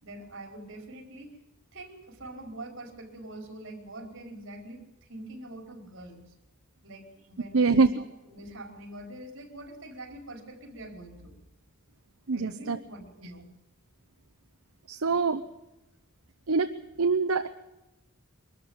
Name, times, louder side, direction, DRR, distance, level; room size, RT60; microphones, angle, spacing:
voice 1, 0.0-1.4 1.7-6.3 6.8-11.4 12.3-13.5, right 1 dB, 60° right, 3 dB, 4.9 m, -44 dB
voice 2, 7.5-7.9 12.3-12.8 14.9-15.4 16.5-16.7 17.0-17.5, right 4 dB, 75° right, 8 dB, 0.8 m, -24 dB
23.5 x 13.5 x 8.9 m, 0.97 s
head